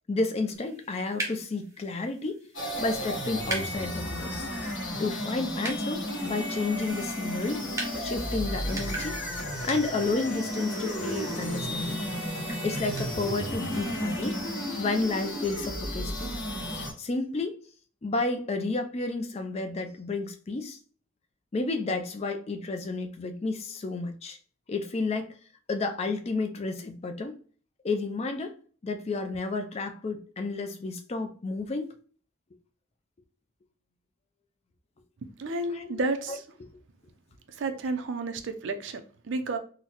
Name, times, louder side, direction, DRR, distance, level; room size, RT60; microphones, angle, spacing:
voice 1, 0.1-2.4 2.8-4.5 5.0-7.7 8.0-9.2 9.6-12.1 12.6-14.4 14.7-16.3 17.0-17.6 18.0-20.8 21.5-24.4 24.7-25.3 25.7-27.4 27.8-28.5 28.8-31.9 35.7-36.0, left 3 dB, 30° left, 0.3 m, -31 dB
sound 1, 0.5-13.1, right 2 dB, 15° right, 0.6 m, -42 dB
sound 2, 2.5-16.9, equal, 60° left, 1.1 m, -33 dB
voice 2, 35.4-36.4 37.6-39.6, right 2 dB, 60° right, 0.4 m, -31 dB
3.9 x 2.1 x 2.9 m
head